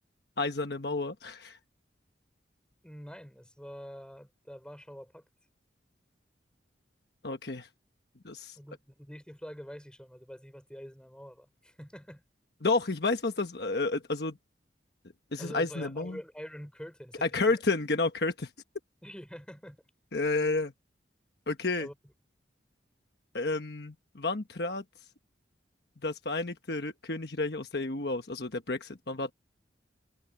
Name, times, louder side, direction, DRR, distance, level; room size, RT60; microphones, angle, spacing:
voice 1, 0.4-1.6 7.2-7.7 8.2-8.6 12.6-14.4 15.3-16.2 17.2-18.5 20.1-20.7 21.5-21.9 23.3-24.8 26.0-29.3, left 3 dB, 60° left, 1.3 m, -31 dB
voice 2, 2.8-5.2 8.6-12.2 15.4-17.6 19.0-19.8 21.8-21.9, equal, 5° left, 5.0 m, -46 dB
head